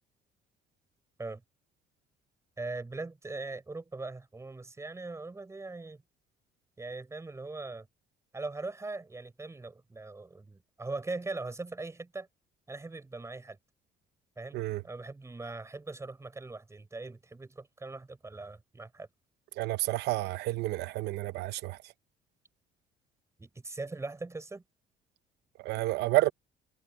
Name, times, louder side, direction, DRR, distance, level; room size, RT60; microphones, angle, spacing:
voice 1, 2.6-6.0 6.8-7.9 8.3-12.3 12.7-13.6 14.4-19.1 23.4-24.6, right 3 dB, 15° right, 6.1 m, -40 dB
voice 2, 19.5-21.9 25.6-26.3, right 17 dB, 85° right, 0.8 m, -30 dB
cardioid pair, 110°, 17 cm